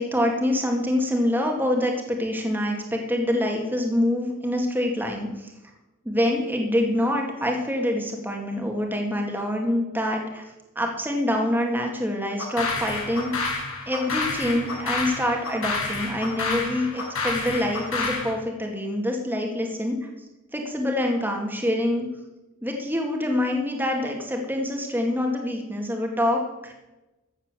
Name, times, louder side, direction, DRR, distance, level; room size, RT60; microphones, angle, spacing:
voice 1, 0.0-5.5 6.1-10.4 10.8-13.3 13.9-20.0 20.5-22.1 22.6-26.7, left 1 dB, 10° right, 1 dB, 2.0 m, -25 dB
sound 1, 12.4-18.3, left 3 dB, 90° left, 5.4 m, -29 dB
14.5 x 8.6 x 6.8 m, 1.0 s
head